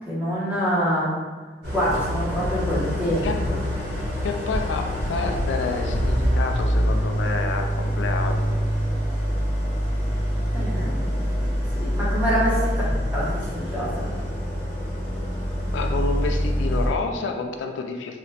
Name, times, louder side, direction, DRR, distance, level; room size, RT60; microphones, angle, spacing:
voice 1, 0.1-1.1 1.7-3.6 10.5-11.1 11.7-12.7 13.1-14.1, equal, 10° right, -10 dB, 0.9 m, -26 dB
Idling, 1.6-16.9, equal, 50° right, 1.0 m, -25 dB
voice 2, 4.2-8.5 15.7-18.2, left 4 dB, 85° left, 4 dB, 0.3 m, -29 dB
2.7 x 2.4 x 3.2 m, 1.4 s
head